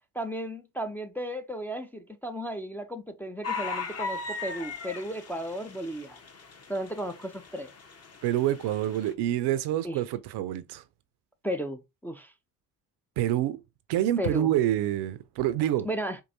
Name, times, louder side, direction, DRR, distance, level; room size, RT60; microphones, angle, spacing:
voice 1, 0.1-6.2 6.7-7.7 9.8-10.0 11.4-12.3 14.2-14.5 15.8-16.2, equal, 5° left, 0.5 m, -34 dB
sound 1, 3.4-9.1, left 4 dB, 30° left, 1.0 m, -38 dB
voice 2, 8.2-10.8 13.2-13.6 13.9-15.9, right 12 dB, 60° right, 0.6 m, -27 dB
4.6 x 2.6 x 2.6 m
hypercardioid pair, 50°, 47 cm